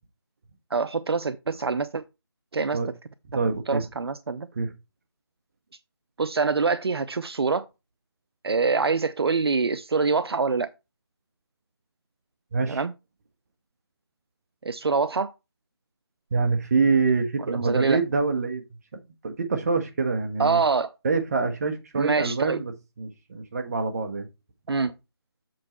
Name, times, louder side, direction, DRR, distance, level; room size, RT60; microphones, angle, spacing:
voice 1, 0.7-2.0 2.5-2.8 3.7-4.5 6.2-7.7 8.4-10.7 12.7-12.9 14.6-15.3 17.5-18.0 20.4-20.9 21.9-22.6 24.7-24.9, right 4 dB, 70° right, 0.6 m, -25 dB
voice 2, 3.3-3.8 4.5-4.7 12.5-12.8 16.3-18.6 18.9-20.6 21.0-22.7 23.0-24.3, right 4 dB, 40° right, 1.3 m, -25 dB
7.7 x 4.5 x 4.3 m
figure-of-eight pair, 160°, 13 cm